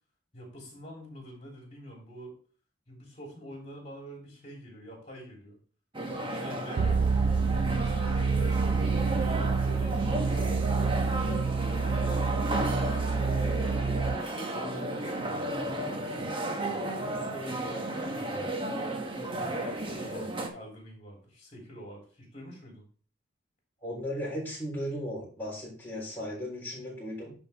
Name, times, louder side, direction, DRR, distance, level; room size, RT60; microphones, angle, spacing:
voice 1, 0.3-2.3 2.9-5.6 6.1-7.1 7.7-10.9 11.8-13.6 14.0-16.4 17.1-18.5 19.3-22.8, equal, 30° left, -1 dB, 3.2 m, -46 dB
sound 1, 5.9-20.5, right 1 dB, 25° right, 1.0 m, -33 dB
sound 2, 6.8-14.2, right 4 dB, 75° right, 0.4 m, -28 dB
voice 2, 23.8-27.3, equal, 10° left, -5 dB, 3.7 m, -36 dB
10.0 x 4.6 x 3.4 m, 0.42 s
head